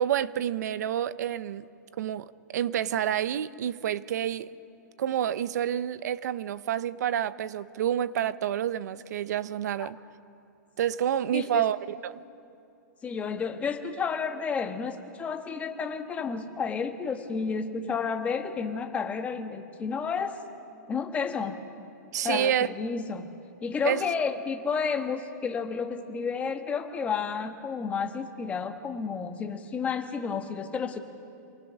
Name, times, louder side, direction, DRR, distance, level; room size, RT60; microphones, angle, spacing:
voice 1, 0.0-1.7 2.0-4.5 5.0-10.0 10.8-12.2 22.1-22.7 23.8-24.0, right 10 dB, 65° right, 0.7 m, -28 dB
voice 2, 11.3-11.6 13.0-20.4 20.9-21.6 22.2-23.3 23.6-31.0, left 5 dB, 15° left, 1.2 m, -31 dB
27.0 x 19.5 x 6.2 m
hypercardioid pair, 150°, 10 cm